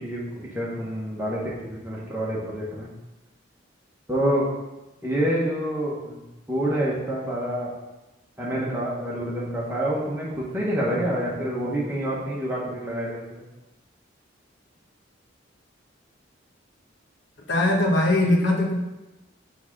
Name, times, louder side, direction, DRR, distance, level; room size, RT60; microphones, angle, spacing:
voice 1, 0.0-2.9 4.1-4.5 5.0-6.2 6.5-7.7 8.4-13.4, equal, 10° right, -6 dB, 1.4 m, -27 dB
voice 2, 17.5-18.7, left 1 dB, 65° left, 0 dB, 1.2 m, -20 dB
6.0 x 3.7 x 5.4 m, 1.0 s
head